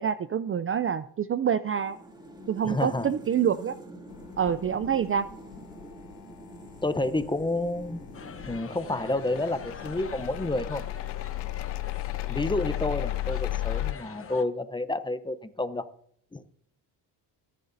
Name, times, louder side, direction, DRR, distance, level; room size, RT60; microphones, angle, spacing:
voice 1, 0.0-2.0 2.5-3.8 4.4-5.3, right 8 dB, 30° right, 13 dB, 0.4 m, -26 dB
sound 1, 1.7-11.0, equal, 10° right, 2.7 m, -47 dB
voice 2, 2.6-3.1 6.8-8.0 8.5-10.8 12.3-15.9 16.3-16.4, left 2 dB, 10° left, 12 dB, 0.7 m, -29 dB
sound 2, 4.1-13.9, left 16 dB, 70° left, 0.5 m, -35 dB
sound 3, 8.1-14.4, left 5 dB, 30° left, 1.0 m, -44 dB
23.5 x 11.0 x 2.7 m, 0.66 s
cardioid pair, 115°, 43 cm